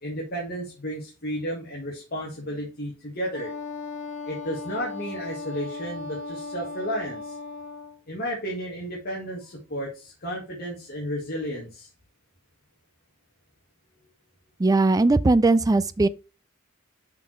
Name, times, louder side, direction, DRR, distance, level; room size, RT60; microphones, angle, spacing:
voice 1, 0.0-3.5 4.3-7.4 8.1-11.9, equal, 45° left, 1.9 m, -33 dB
Wind instrument woodwind instrument, 3.3-8.0, left 4 dB, 30° left, 2.4 m, -37 dB
voice 2, 14.6-16.1, right 2 dB, 15° right, 0.3 m, -19 dB
6.0 x 5.7 x 4.5 m
head